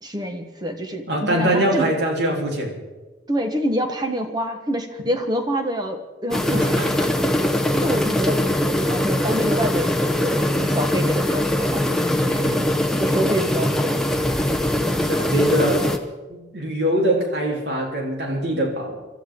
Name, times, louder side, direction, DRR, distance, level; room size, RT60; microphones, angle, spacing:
voice 1, 0.0-1.9 3.3-6.8 7.7-12.7 13.0-13.9 14.8-15.0, equal, 20° right, 5 dB, 1.3 m, -27 dB
voice 2, 1.1-2.7 6.5-6.9 12.4-12.7 15.1-15.9 16.3-19.0, right 1 dB, 70° right, -1 dB, 3.6 m, -23 dB
sound 1, 6.3-16.0, left 1 dB, 5° left, 0.9 m, -22 dB
25.5 x 13.5 x 3.8 m, 1.2 s
head